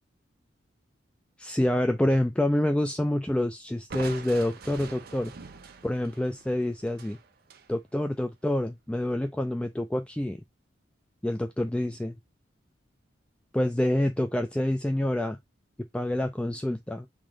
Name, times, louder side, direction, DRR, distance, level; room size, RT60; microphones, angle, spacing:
voice 1, 1.4-5.3 5.8-7.2 7.7-10.4 11.2-12.2 13.5-15.4 15.9-17.1, left 1 dB, 5° left, 0.3 m, -27 dB
Crushing, 3.9-7.7, right 4 dB, 55° right, 0.6 m, -44 dB
3.7 x 3.0 x 4.7 m
head